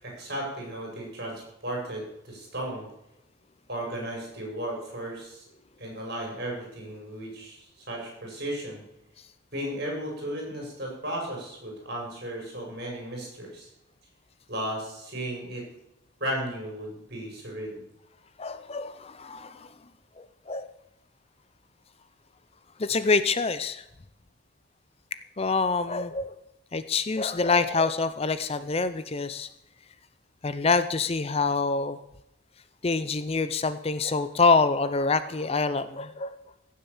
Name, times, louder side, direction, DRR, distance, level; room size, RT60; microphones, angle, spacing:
voice 1, 0.0-2.9 3.7-5.4 5.8-8.8 9.5-13.7 14.5-15.7 16.2-17.8, right 1 dB, 50° right, -1 dB, 6.7 m, -35 dB
voice 2, 18.4-19.7 20.2-20.7 22.8-23.8 25.4-26.4 26.7-29.5 30.4-32.0 32.8-36.4, left 4 dB, 30° left, 12 dB, 0.5 m, -26 dB
16.0 x 7.5 x 7.2 m, 0.85 s
head